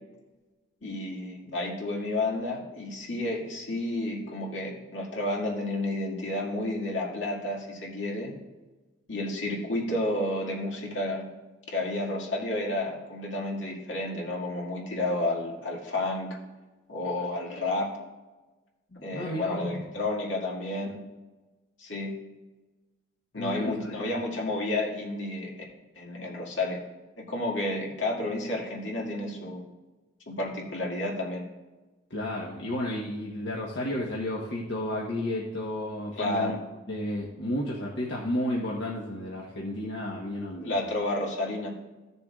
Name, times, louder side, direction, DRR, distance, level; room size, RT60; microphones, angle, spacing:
voice 1, 0.8-8.3 9.1-11.3 11.7-16.4 16.9-17.9 19.0-21.0 21.8-22.1 23.3-25.5 25.9-26.8 27.2-29.7 30.3-31.4 36.2-36.6 40.6-41.7, left 2 dB, 85° left, -2 dB, 2.1 m, -31 dB
voice 2, 18.9-19.7 23.4-23.9 32.1-36.6 36.9-40.8, left 1 dB, 70° left, -3 dB, 1.1 m, -32 dB
15.0 x 6.9 x 2.4 m, 1.2 s
head